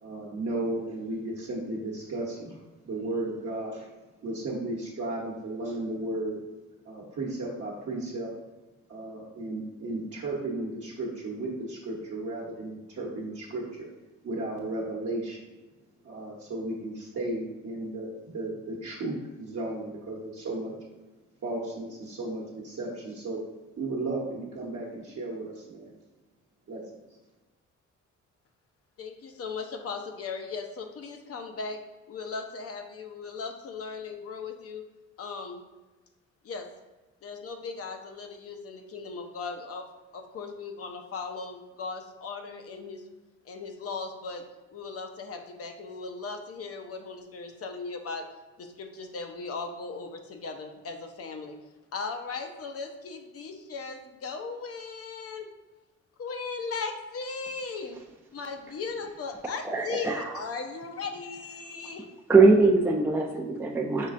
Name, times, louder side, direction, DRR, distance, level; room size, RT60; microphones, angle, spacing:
voice 1, 0.0-3.9 4.2-6.4 6.8-8.3 8.9-13.9 14.2-15.4 16.0-20.7 21.4-23.4 23.8-25.9 26.7-26.8, right 2 dB, 55° right, -5 dB, 1.0 m, -34 dB
voice 2, 29.0-34.8 35.2-35.6 36.4-36.7 37.2-39.9 40.1-43.0 43.4-44.4 44.7-48.3 48.6-51.6 51.9-55.5 56.2-58.0 58.3-62.0, left 4 dB, 50° left, 5 dB, 0.6 m, -37 dB
voice 3, 59.7-60.3 62.3-64.1, right 3 dB, 10° right, 1 dB, 0.4 m, -21 dB
5.5 x 3.2 x 2.5 m, 1.2 s
cardioid pair, 90°, 30 cm